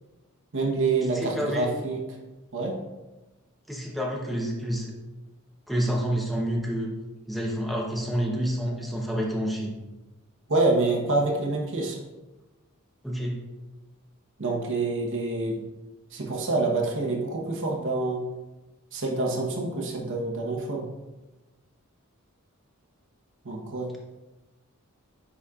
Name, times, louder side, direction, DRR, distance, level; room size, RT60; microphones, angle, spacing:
voice 1, 0.5-2.0 2.5-2.8 10.5-12.0 14.4-15.6 16.1-18.2 18.9-20.8 23.4-23.9, right 3 dB, 60° right, 0 dB, 1.0 m, -26 dB
voice 2, 1.1-1.7 3.7-4.9 5.7-6.9 7.3-9.7 13.0-13.4, equal, ahead, -2 dB, 0.8 m, -28 dB
9.6 x 4.2 x 2.4 m, 1.1 s
head